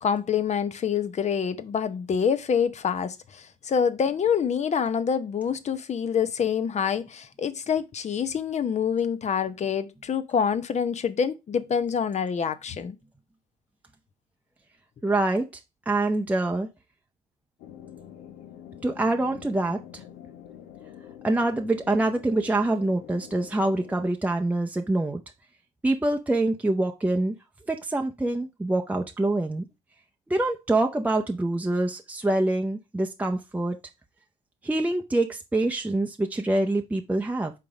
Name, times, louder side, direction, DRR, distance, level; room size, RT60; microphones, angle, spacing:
voice 1, 0.0-12.9, left 7 dB, 40° left, 0.8 m, -26 dB
voice 2, 15.0-15.5 15.9-16.7 18.8-20.0 21.2-25.2 25.8-27.3 27.7-29.6 30.3-33.8 34.6-37.5, right 2 dB, 10° right, 0.7 m, -25 dB
sound 1, 17.6-24.1, left 10 dB, 70° left, 0.8 m, -46 dB
5.5 x 3.8 x 5.0 m
hypercardioid pair, 55°, 18 cm